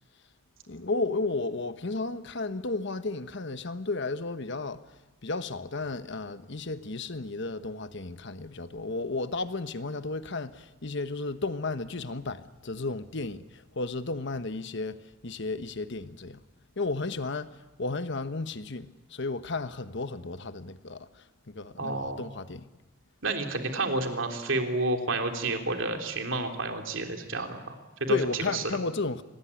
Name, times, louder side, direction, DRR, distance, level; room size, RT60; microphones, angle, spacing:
voice 1, 0.7-4.8 5.2-16.4 16.8-17.5 17.8-21.1 21.5-22.7 28.1-29.2, left 3 dB, 60° left, 1.2 m, -33 dB
voice 2, 21.8-22.2 23.2-28.6, right 2 dB, 70° right, 3.3 m, -30 dB
26.0 x 19.5 x 9.9 m
head